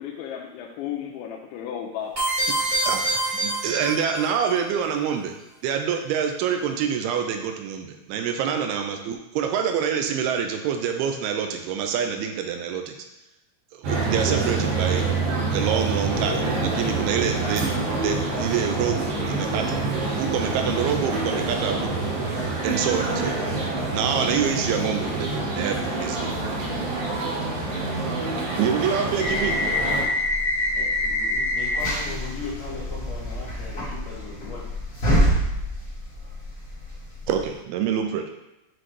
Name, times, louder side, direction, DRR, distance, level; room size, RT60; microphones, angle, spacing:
voice 1, 0.0-2.1, left 9 dB, 85° left, -2 dB, 2.6 m, -34 dB
sound 1, 2.1-4.5, right 2 dB, 30° right, 0.8 m, -26 dB
voice 2, 2.8-5.4 5.6-13.0 13.7-15.1 15.5-17.7 18.0-19.0 19.3-19.8 20.2-21.9 22.6-23.5 23.9-26.4 28.6-29.6 37.3-38.3, right 7 dB, 85° right, 5 dB, 2.3 m, -26 dB
sound 2, 13.8-30.0, right 3 dB, 65° right, 2.6 m, -26 dB
sound 3, 29.2-37.5, left 1 dB, 40° left, 1.2 m, -26 dB
voice 3, 30.7-33.8 34.1-34.6, left 3 dB, 65° left, -6 dB, 1.7 m, -38 dB
7.9 x 3.9 x 3.2 m, 0.93 s
omnidirectional pair, 4.8 m